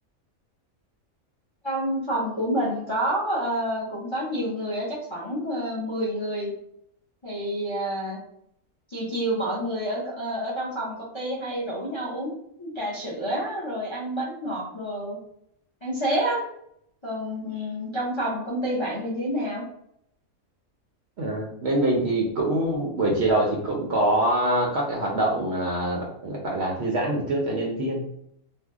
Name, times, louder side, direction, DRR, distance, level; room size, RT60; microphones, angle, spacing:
voice 1, 1.6-6.5 7.2-8.2 8.9-12.3 12.6-15.2 15.8-16.4 17.0-19.6, equal, 30° left, -6 dB, 0.5 m, -28 dB
voice 2, 21.2-28.0, right 1 dB, 60° right, -1 dB, 0.7 m, -24 dB
2.6 x 2.1 x 3.5 m, 0.72 s
omnidirectional pair, 1.5 m